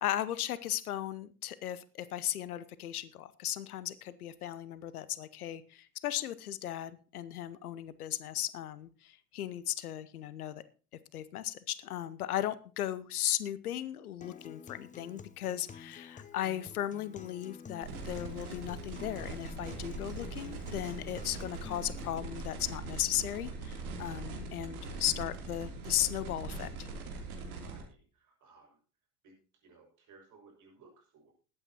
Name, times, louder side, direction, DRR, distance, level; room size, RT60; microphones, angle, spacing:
voice 1, 0.0-10.6 11.1-26.9, left 12 dB, 70° left, 16 dB, 0.9 m, -36 dB
Acoustic guitar, 14.2-22.2, left 6 dB, 15° left, 0.9 m, -50 dB
sound 1, 17.8-27.8, right 3 dB, 65° right, 3.3 m, -41 dB
voice 2, 24.9-25.3 27.6-28.8 29.2-29.4 29.6-31.3, right 4 dB, 40° right, 1 dB, 6.5 m, -60 dB
20.5 x 8.9 x 2.9 m, 0.36 s
figure-of-eight pair, 70°, 47 cm